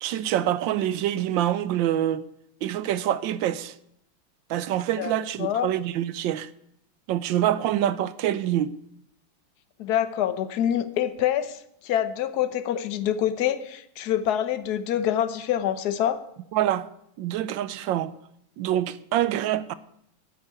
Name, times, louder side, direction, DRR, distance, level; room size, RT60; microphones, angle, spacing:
voice 1, 0.0-2.2 2.6-3.7 4.5-6.5 7.1-8.7 16.5-16.9 17.2-18.1 18.6-19.7, right 12 dB, 75° right, 1.3 m, -26 dB
voice 2, 5.4-5.7 9.8-16.2, left 10 dB, 60° left, 1.2 m, -26 dB
10.0 x 6.8 x 9.2 m
omnidirectional pair, 2.3 m